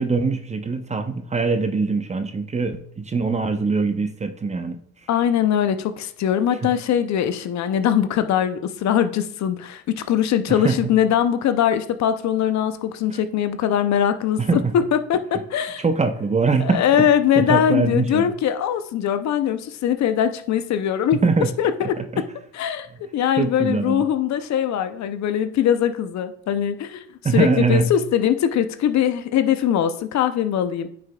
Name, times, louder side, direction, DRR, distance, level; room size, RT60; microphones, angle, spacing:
voice 1, 0.0-4.8 6.6-6.7 10.5-10.9 13.1-13.2 14.4-14.8 15.8-17.1 17.4-18.3 21.1-21.5 22.0-22.2 23.4-24.0 27.2-27.9, right 4 dB, 20° right, 8 dB, 0.7 m, -22 dB
voice 2, 5.1-14.6 14.9-15.8 16.6-21.2 21.6-22.2 22.5-22.9 23.1-27.1 27.3-30.9, left 9 dB, 55° left, 10 dB, 0.6 m, -21 dB
9.3 x 4.9 x 2.3 m, 0.62 s
supercardioid pair, 70°, 33 cm